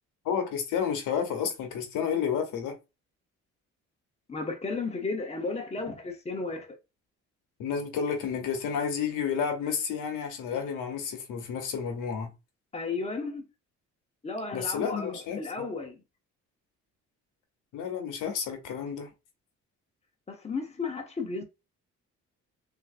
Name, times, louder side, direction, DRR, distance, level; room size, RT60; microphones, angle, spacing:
voice 1, 0.2-2.7 7.6-12.3 14.5-15.4 17.7-19.1, left 7 dB, 90° left, 1.0 m, -31 dB
voice 2, 4.3-6.8 12.7-13.5 14.2-16.0 20.3-21.4, left 3 dB, 20° left, 1.0 m, -34 dB
3.6 x 2.7 x 2.5 m
cardioid pair, 90°, 30 cm